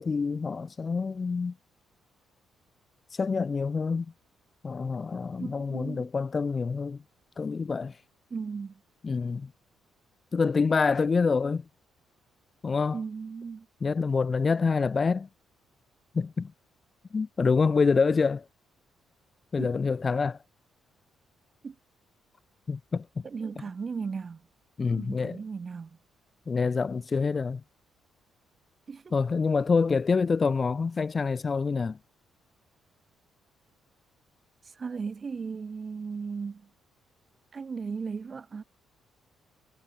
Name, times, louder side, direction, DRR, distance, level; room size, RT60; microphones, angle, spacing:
voice 1, 0.0-1.5 3.1-4.1 4.6-7.0 7.4-8.0 9.0-9.5 10.3-11.6 12.6-13.0 13.8-15.3 16.1-16.5 17.1-18.4 19.5-20.4 22.7-23.2 24.8-25.4 26.5-27.6 29.1-32.0, left 4 dB, 35° left, 1.0 m, -26 dB
voice 2, 5.4-6.1 8.3-8.8 12.9-13.7 19.6-19.8 21.6-21.8 23.2-24.4 24.9-26.0 28.9-29.1 34.7-36.7 37.5-38.6, right 5 dB, 40° right, 2.3 m, -36 dB
cardioid pair, 90°, 0 cm